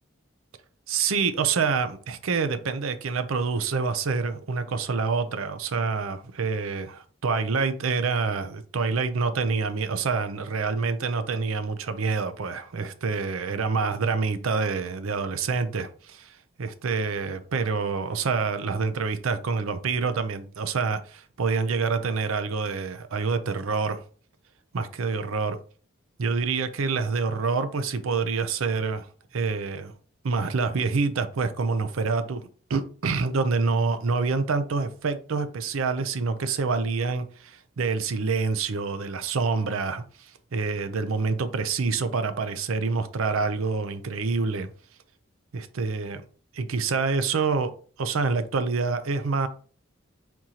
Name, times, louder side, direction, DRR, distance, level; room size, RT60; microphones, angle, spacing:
voice 1, 0.9-6.9 7.2-24.0 24.7-25.6 26.2-29.1 29.3-29.9 30.2-32.4 32.7-44.7 45.5-46.2 46.5-47.7 48.0-49.5, right 4 dB, 80° right, 0.5 m, -27 dB
4.5 x 3.7 x 2.8 m
head